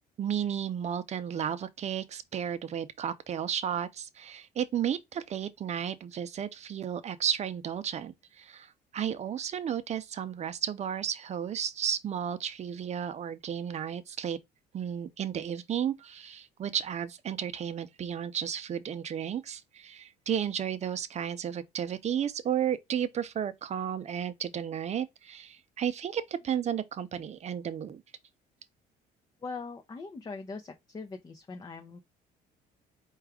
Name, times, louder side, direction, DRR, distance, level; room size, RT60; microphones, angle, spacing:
voice 1, 0.2-14.4 14.7-28.0, right 9 dB, 40° right, 0.6 m, -33 dB
voice 2, 29.4-32.0, left 4 dB, 25° left, 0.7 m, -41 dB
4.6 x 2.4 x 4.8 m
cardioid pair, 110°, 17 cm